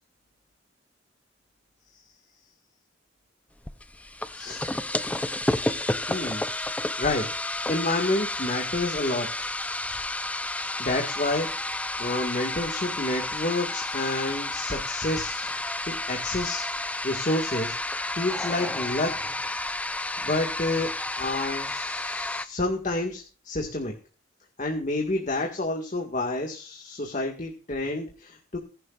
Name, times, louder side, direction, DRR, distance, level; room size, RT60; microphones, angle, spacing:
sound 1, 3.7-22.5, left 2 dB, 10° left, 0.6 m, -31 dB
voice 1, 6.1-6.4 7.0-9.3 10.8-11.5 12.0-16.7 17.0-17.8 18.1-19.1 20.2-20.9 21.2-23.9 24.6-28.6, left 2 dB, 40° left, 1 dB, 1.9 m, -29 dB
21.0 x 11.5 x 2.5 m, 0.35 s
head